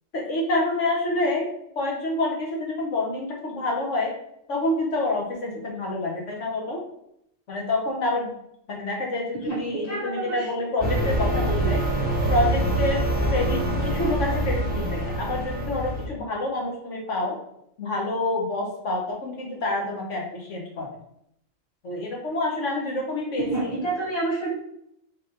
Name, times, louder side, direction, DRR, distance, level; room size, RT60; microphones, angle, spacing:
voice 1, 0.1-1.5 1.7-4.1 4.5-6.8 7.5-8.4 8.7-11.8 12.3-17.4 17.8-21.0 21.8-23.8, left 2 dB, 70° left, -1 dB, 1.5 m, -27 dB
voice 2, 9.8-10.4 23.4-24.5, right 2 dB, 30° left, -6 dB, 1.8 m, -28 dB
sound 1, 10.8-16.1, right 1 dB, 10° right, 0.8 m, -25 dB
3.9 x 3.6 x 3.8 m, 0.75 s
omnidirectional pair, 1.3 m